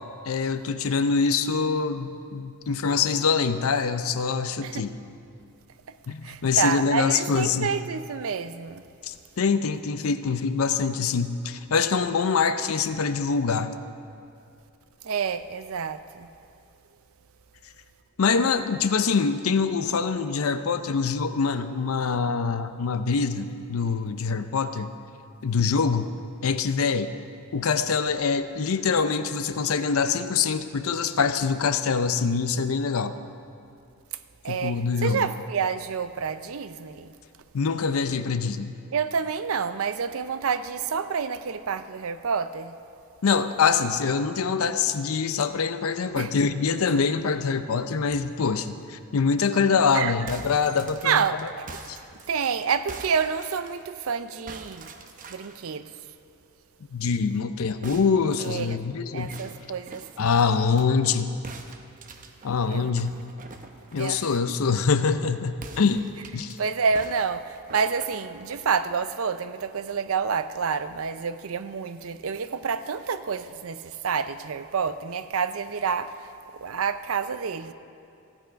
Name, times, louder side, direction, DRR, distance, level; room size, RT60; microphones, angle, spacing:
voice 1, 0.3-4.9 6.1-7.7 9.0-13.7 18.2-24.9 25.4-26.1 26.4-27.1 27.5-33.1 34.5-35.2 37.5-38.7 43.2-51.2 51.9-52.0 56.9-59.3 60.2-61.3 62.4-63.1 63.9-66.1 66.3-66.6, left 5 dB, 70° left, 0.5 m, -24 dB
voice 2, 6.2-8.8 15.0-16.3 34.4-37.1 38.9-42.7 46.2-46.3 49.9-50.1 51.0-51.7 52.3-54.9 55.3-55.9 58.4-58.8 59.1-60.4 62.7-62.9 64.0-64.3 66.6-76.3 76.5-77.7, right 6 dB, 70° right, 0.5 m, -28 dB
sound 1, 50.2-54.1 54.5-55.6 57.8-60.9 61.4-64.3 65.5-66.6 66.9-68.8, right 3 dB, 40° right, 0.7 m, -45 dB
15.0 x 9.0 x 5.2 m
head